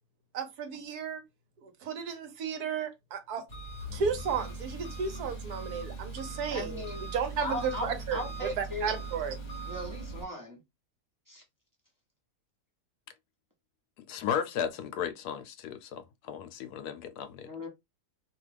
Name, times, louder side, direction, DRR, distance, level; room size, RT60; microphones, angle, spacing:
voice 1, 0.3-1.2 1.6-3.4 3.9-9.4, right 6 dB, 75° right, 1.2 m, -34 dB
Engine, 3.5-10.2, right 3 dB, 25° left, 1.2 m, -40 dB
voice 2, 6.5-7.1 7.4-9.0 9.7-10.6 11.3-11.4 17.5-17.7, left 1 dB, 20° right, 0.5 m, -38 dB
voice 3, 14.1-17.5, left 8 dB, 80° left, 1.1 m, -35 dB
2.9 x 2.3 x 3.3 m
omnidirectional pair, 1.7 m